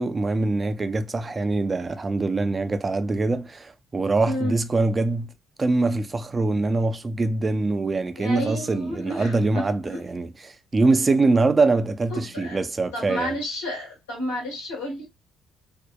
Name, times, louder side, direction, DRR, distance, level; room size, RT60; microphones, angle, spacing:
voice 1, 0.0-5.3 5.6-13.4, right 3 dB, 30° right, 0.4 m, -23 dB
voice 2, 8.2-9.4 9.8-10.0 12.1-12.6 12.9-15.1, left 1 dB, 90° left, 1.3 m, -31 dB
2.7 x 2.1 x 2.3 m
hypercardioid pair, 50°, 0 cm